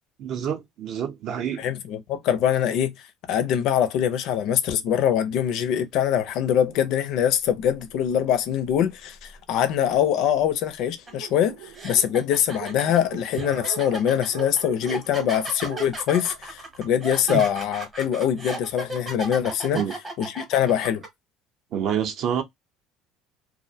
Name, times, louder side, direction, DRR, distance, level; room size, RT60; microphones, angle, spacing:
voice 1, 0.2-1.6 17.3-17.4 19.7-19.9 21.7-22.4, right 8 dB, 45° right, 0.5 m, -27 dB
voice 2, 1.6-19.8 20.2-21.0, left 9 dB, 55° left, 0.4 m, -23 dB
Dog, 6.7-9.7 10.4-10.5 10.8-10.9 11.0-17.4, right 8 dB, 85° right, 0.7 m, -42 dB
sound 1, 11.1-11.2 11.7-21.1, right 2 dB, 15° right, 0.8 m, -35 dB
2.4 x 2.0 x 2.6 m
cardioid pair, 165°, 0 cm